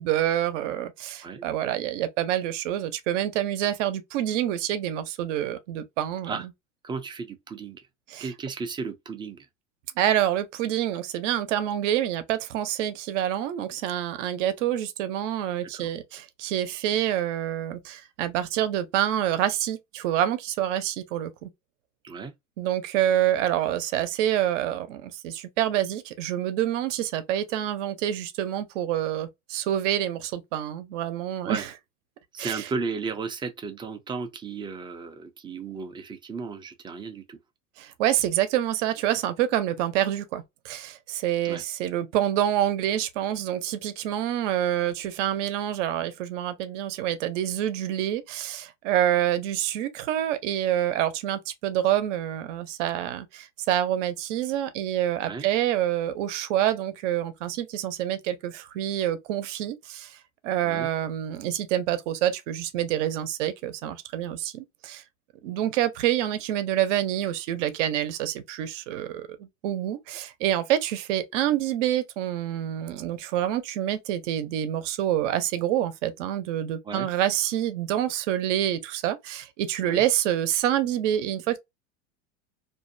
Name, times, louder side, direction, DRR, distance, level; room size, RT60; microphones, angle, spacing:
voice 1, 0.0-6.3 8.1-8.3 10.0-21.5 22.6-31.7 32.4-32.7 37.8-60.2 60.4-65.0 65.4-81.6, right 11 dB, 70° right, 0.7 m, -27 dB
voice 2, 6.8-7.9 8.2-9.5 15.7-15.9 22.0-22.3 31.5-31.6 32.3-37.4 41.4-41.6 55.2-55.5 60.6-60.9 76.8-77.1 79.8-80.0, right 4 dB, 15° right, 0.3 m, -34 dB
2.5 x 2.1 x 2.6 m
supercardioid pair, 115°, 38 cm